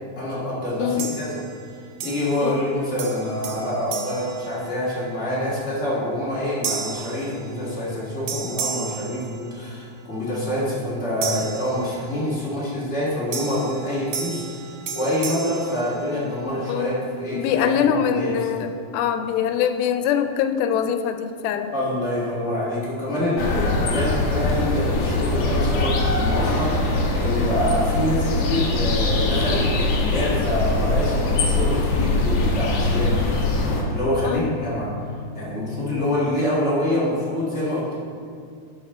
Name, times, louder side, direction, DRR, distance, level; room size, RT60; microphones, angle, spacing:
voice 1, 0.1-1.4 2.0-18.3 21.7-33.5 33.9-37.9, left 1 dB, 30° left, -8 dB, 1.4 m, -26 dB
voice 2, 0.8-1.1 2.4-2.6 16.7-17.0 17.3-21.7 34.2-34.5 36.0-36.1, left 8 dB, 90° left, 8 dB, 2.4 m, -23 dB
sound 1, 1.0-1.6 2.0-2.7 3.0-5.1 5.7-5.9 6.6-8.0 8.3-9.9 11.2-12.4 13.3-16.6, right 6 dB, 75° right, 1.7 m, -34 dB
sound 2, 23.4-33.8, left 2 dB, 65° left, 1.8 m, -22 dB
sound 3, 30.8-36.3, left 5 dB, 40° right, 2.2 m, -37 dB
11.5 x 4.8 x 4.3 m, 2.2 s
omnidirectional pair, 4.2 m